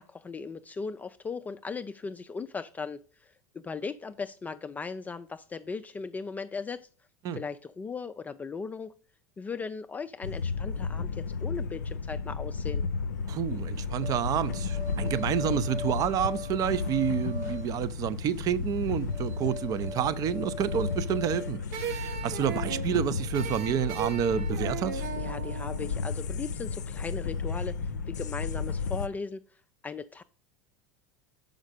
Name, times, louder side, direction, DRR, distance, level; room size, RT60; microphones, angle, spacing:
voice 1, 0.0-6.9 7.3-8.9 9.4-12.8 25.2-29.4 29.8-30.2, left 5 dB, 15° left, 0.3 m, -38 dB
sound 1, 10.2-29.1, left 5 dB, 80° left, 0.5 m, -33 dB
voice 2, 13.3-25.0, right 9 dB, 40° right, 0.5 m, -29 dB
sound 2, 14.0-21.5, left 4 dB, 85° right, 2.9 m, -41 dB
sound 3, 21.7-26.8, right 7 dB, 70° right, 1.0 m, -38 dB
6.3 x 5.1 x 4.9 m
hypercardioid pair, 85°, 9 cm